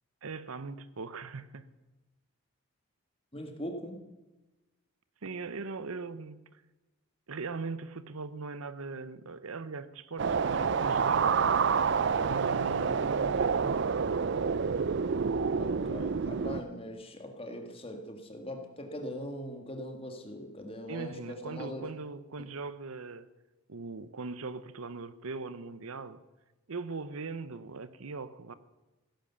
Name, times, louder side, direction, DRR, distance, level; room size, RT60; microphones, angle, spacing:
voice 1, 0.2-1.7 5.2-6.6 7.3-11.3 12.2-14.0 20.9-23.3 23.7-26.2 26.7-28.5, right 4 dB, 75° right, 14 dB, 0.8 m, -40 dB
voice 2, 3.3-4.0 15.6-21.9, equal, 25° left, 5 dB, 1.7 m, -41 dB
sound 1, 10.2-16.6, right 5 dB, 50° right, 0.4 m, -28 dB
16.0 x 10.5 x 7.0 m, 1.1 s
head